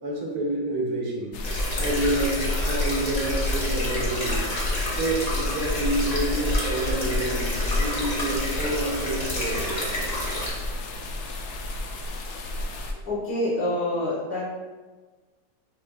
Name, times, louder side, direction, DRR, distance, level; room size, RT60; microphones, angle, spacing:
voice 1, 0.0-1.3 1.8-4.4 5.0-9.8 12.9-13.0, right 1 dB, 65° right, -2 dB, 1.3 m, -28 dB
Stir fry, 1.3-12.9, left 1 dB, 90° left, 0.6 m, -30 dB
sound 1, 1.4-10.5, left 1 dB, 35° left, 0.7 m, -30 dB
voice 2, 13.1-14.5, left 1 dB, 60° left, -8 dB, 2.0 m, -26 dB
7.4 x 2.9 x 2.3 m, 1.3 s
omnidirectional pair, 1.9 m